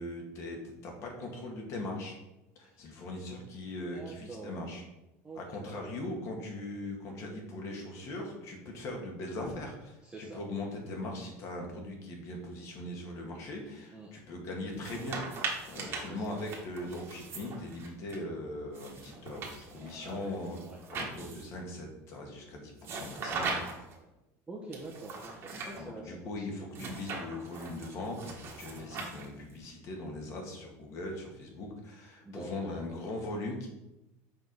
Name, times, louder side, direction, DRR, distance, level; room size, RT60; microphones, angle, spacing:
voice 1, 0.0-2.2 2.6-4.8 5.4-15.2 15.7-20.6 20.9-23.7 25.8-33.7, left 1 dB, 45° left, 1 dB, 1.8 m, -40 dB
voice 2, 3.9-4.6 5.2-5.7 10.0-10.4 13.9-14.1 15.7-16.2 19.5-20.3 20.6-20.8 24.0-24.1 24.5-26.4 32.2-32.8, right 2 dB, 10° right, -3 dB, 1.0 m, -46 dB
sound 1, 14.7-18.2 18.7-21.6 22.8-24.0 24.7-25.8 26.7-29.5, right 4 dB, 35° right, 1.5 m, -40 dB
6.2 x 4.5 x 5.3 m, 0.95 s
cardioid pair, 150°, 7 cm